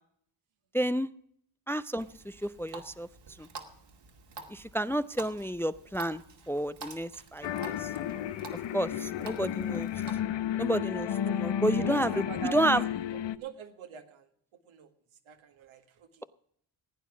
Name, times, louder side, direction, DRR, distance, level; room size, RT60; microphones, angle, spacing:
voice 1, 0.7-1.1 1.7-3.1 3.4-3.5 4.5-7.9 8.7-9.9 10.6-12.8, right 1 dB, 5° left, 14 dB, 0.5 m, -30 dB
Water tap faucet, 2.0-10.2, right 3 dB, 60° right, 2.3 m, -49 dB
sound 1, 7.4-13.4, left 10 dB, 60° left, 0.9 m, -32 dB
voice 2, 11.8-12.9 13.3-14.3 14.6-14.9 15.3-16.2, right 7 dB, 80° right, 6 dB, 1.8 m, -44 dB
16.0 x 9.2 x 6.0 m, 0.67 s
supercardioid pair, 50°, 47 cm